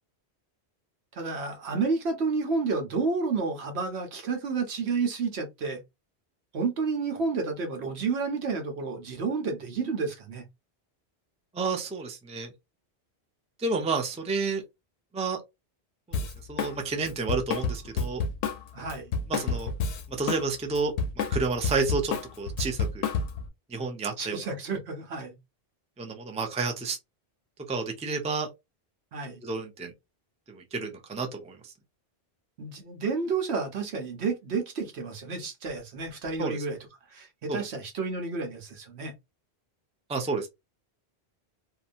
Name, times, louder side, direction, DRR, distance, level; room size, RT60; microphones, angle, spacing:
voice 1, 1.1-5.8 6.5-10.4 18.7-19.1 24.2-25.4 29.1-29.4 32.6-36.8 37.1-39.1, right 4 dB, 75° right, 1.1 m, -30 dB
voice 2, 11.5-12.5 13.6-14.6 15.1-15.4 16.1-18.2 19.3-19.7 20.1-23.1 23.7-24.5 26.0-27.0 27.7-28.5 29.4-29.9 30.5-31.7 36.4-36.6 37.5-37.6 40.1-40.5, right 4 dB, 10° right, 0.4 m, -30 dB
Drum kit, 16.1-16.8 17.0-20.4 20.7-23.5, left 4 dB, 85° left, 0.9 m, -29 dB
2.8 x 2.2 x 2.5 m
omnidirectional pair, 1.1 m